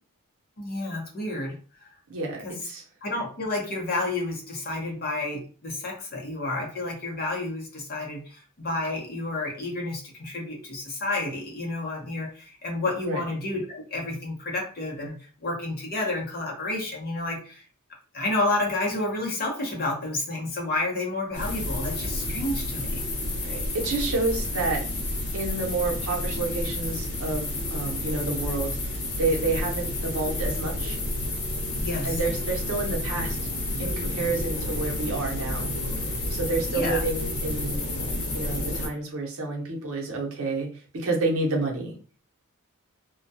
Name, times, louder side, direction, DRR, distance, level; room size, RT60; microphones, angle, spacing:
voice 1, 0.6-1.6 2.4-2.6 3.0-17.6 18.1-23.0 31.8-32.2 36.7-37.0, left 2 dB, 45° left, 0 dB, 0.8 m, -30 dB
voice 2, 2.1-2.8 13.0-13.2 23.4-24.8 25.3-31.0 32.0-33.4 33.8-35.7 36.3-37.8 38.3-40.7 40.9-41.9, right 3 dB, 70° right, 0 dB, 0.7 m, -29 dB
sound 1, 21.3-38.9, left 1 dB, 75° left, 0.8 m, -30 dB
2.2 x 2.2 x 2.6 m, 0.38 s
head